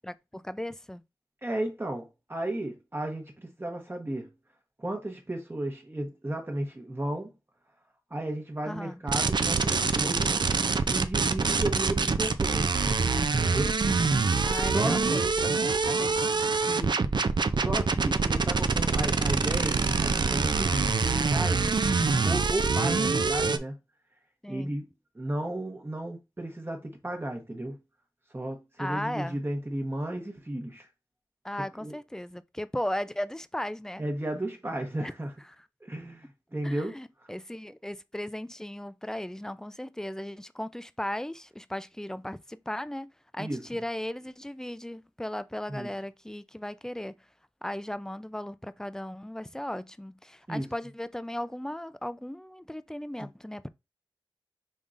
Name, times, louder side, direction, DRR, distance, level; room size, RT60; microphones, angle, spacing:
voice 1, 0.0-1.0 8.7-9.0 14.4-16.4 24.4-24.7 28.8-29.4 31.4-34.0 35.0-35.1 36.6-47.2 47.6-53.7, left 1 dB, 5° left, 0.3 m, -36 dB
voice 2, 1.4-4.3 4.8-7.3 8.1-10.4 10.9-12.8 13.4-13.7 14.3-15.0 16.7-17.1 17.6-21.7 22.2-23.8 24.5-24.9 25.1-27.8 28.3-30.9 31.8-32.0 34.0-35.3 35.8-37.0 43.4-43.6 45.7-45.9 50.5-50.7, right 1 dB, 25° right, 1.0 m, -34 dB
sound 1, 9.1-23.6, right 4 dB, 65° right, 0.4 m, -25 dB
5.4 x 3.6 x 2.5 m
wide cardioid pair, 60°, 8 cm